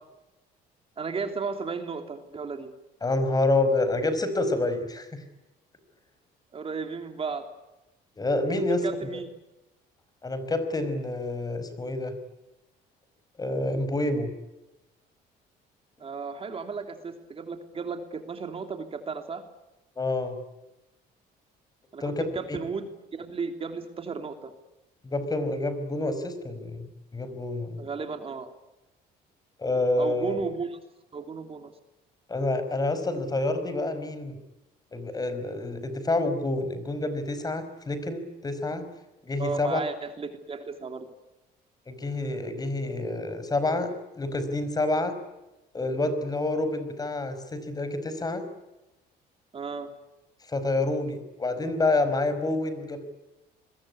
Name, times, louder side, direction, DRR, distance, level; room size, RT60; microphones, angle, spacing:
voice 1, 1.0-2.7 6.5-7.4 8.5-9.3 16.0-19.4 21.9-24.5 27.8-28.5 30.0-30.8 31.1-31.7 39.4-41.1 49.5-49.9, right 4 dB, 35° right, 6 dB, 3.1 m, -34 dB
voice 2, 3.0-5.2 8.2-8.9 10.2-12.2 13.4-14.3 20.0-20.4 22.0-22.6 25.0-27.8 29.6-30.4 32.3-34.4 34.9-38.8 39.2-39.8 41.9-43.9 44.2-45.1 45.7-48.4 50.5-53.0, left 2 dB, 20° left, 11 dB, 5.0 m, -28 dB
26.5 x 22.0 x 9.7 m, 0.98 s
cardioid pair, 110°, 17 cm